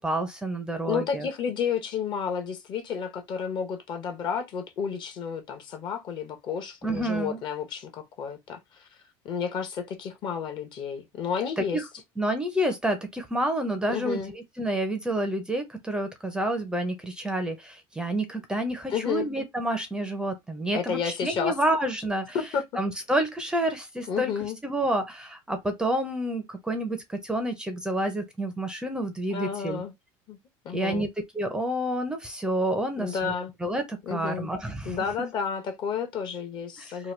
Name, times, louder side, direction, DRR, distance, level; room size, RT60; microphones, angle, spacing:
voice 1, 0.0-1.3 6.8-7.4 11.6-11.8 12.2-22.4 22.8-24.3 24.6-29.8 30.7-31.1 31.3-33.3 33.6-35.0 36.8-37.0, right 1 dB, 5° right, 0.5 m, -29 dB
voice 2, 0.9-8.9 9.2-11.8 13.9-14.3 18.9-19.3 20.7-21.6 22.3-22.6 24.1-24.6 29.3-29.9 30.3-30.4 30.6-31.1 33.0-33.5 34.1-34.5 34.8-37.1, left 6 dB, 45° left, 0.9 m, -31 dB
2.9 x 2.2 x 3.1 m
cardioid pair, 135°, 11 cm